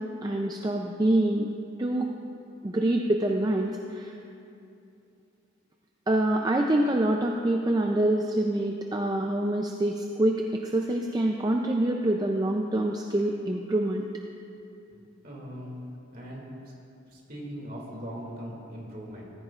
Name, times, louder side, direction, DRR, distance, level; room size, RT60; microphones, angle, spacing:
voice 1, 0.0-1.5 1.8-2.1 2.6-4.2 6.1-14.1, right 1 dB, 20° right, 2 dB, 0.4 m, -26 dB
voice 2, 15.2-15.7 16.1-16.5 17.1-19.2, equal, 45° right, -3 dB, 2.4 m, -40 dB
15.0 x 13.5 x 2.4 m, 2.7 s
head